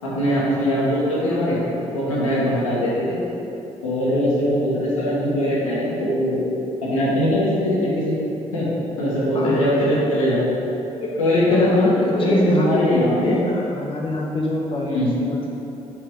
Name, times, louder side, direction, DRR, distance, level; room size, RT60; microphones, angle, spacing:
voice 1, 0.0-1.6 1.9-3.2 3.8-6.4 6.8-8.1 8.5-8.7 9.0-10.5 11.0-13.4 14.8-15.1, equal, 90° left, -7 dB, 1.2 m, -21 dB
voice 2, 9.3-10.0 11.5-15.5, left 1 dB, 30° left, -3 dB, 0.8 m, -24 dB
7.3 x 4.8 x 3.6 m, 3.0 s
hypercardioid pair, 40°, 17 cm